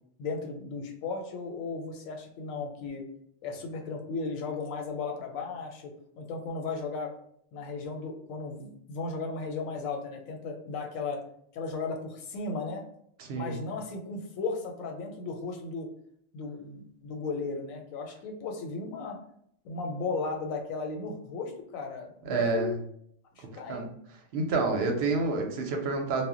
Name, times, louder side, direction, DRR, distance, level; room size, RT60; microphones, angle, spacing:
voice 1, 0.2-3.0 3.4-7.1 7.5-11.2 11.5-12.8 13.3-15.9 16.3-19.2 19.6-22.8 23.4-24.0, left 4 dB, 90° left, 3 dB, 1.0 m, -35 dB
voice 2, 13.2-13.5 22.2-22.7 23.7-23.9 24.3-26.3, right 3 dB, 60° right, 2 dB, 0.7 m, -28 dB
2.1 x 2.1 x 3.6 m, 0.68 s
omnidirectional pair, 1.4 m